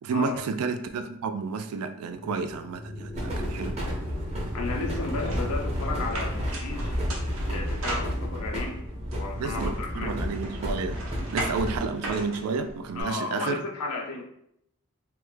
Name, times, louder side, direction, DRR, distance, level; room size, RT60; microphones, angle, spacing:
voice 1, 0.0-3.8 9.4-11.0 11.3-13.6, right 4 dB, 80° right, 8 dB, 0.3 m, -31 dB
sound 1, 2.1-6.9, left 1 dB, 15° left, 0.3 m, -42 dB
sound 2, 3.1-11.8, equal, 30° right, 0.6 m, -31 dB
voice 2, 4.5-6.9 7.5-8.8 9.1-10.2 12.9-14.2, left 3 dB, 85° left, 2 dB, 0.6 m, -34 dB
sound 3, 5.2-8.6 9.1-13.0, right 2 dB, 60° right, 0.8 m, -38 dB
3.3 x 2.1 x 3.2 m, 0.73 s
head